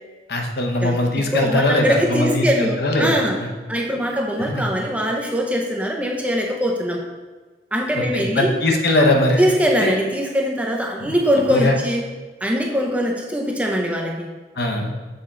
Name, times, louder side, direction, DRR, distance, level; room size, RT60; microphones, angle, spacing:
voice 1, 0.3-3.2 4.5-4.6 7.9-9.4 9.8-9.9 11.0-11.1 11.5-11.7 14.6-14.9, left 1 dB, 60° left, 2 dB, 0.8 m, -20 dB
voice 2, 0.8-3.4 3.7-7.0 7.7-8.5 9.4-12.0 12.4-14.3, equal, 10° right, 0 dB, 0.5 m, -22 dB
6.7 x 4.4 x 3.8 m, 1.3 s
head